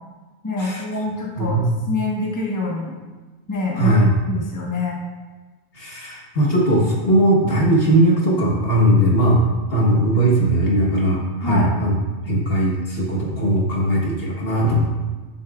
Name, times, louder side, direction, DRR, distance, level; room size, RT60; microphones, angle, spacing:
voice 1, 0.4-3.0 3.5-5.0 11.4-11.7, left 3 dB, 15° left, -3 dB, 1.2 m, -25 dB
voice 2, 1.4-1.7 3.8-4.1 5.7-9.4 9.7-12.0 12.3-14.9, right 1 dB, 50° left, -3 dB, 1.5 m, -18 dB
11.0 x 6.8 x 2.4 m, 1.3 s
omnidirectional pair, 1.3 m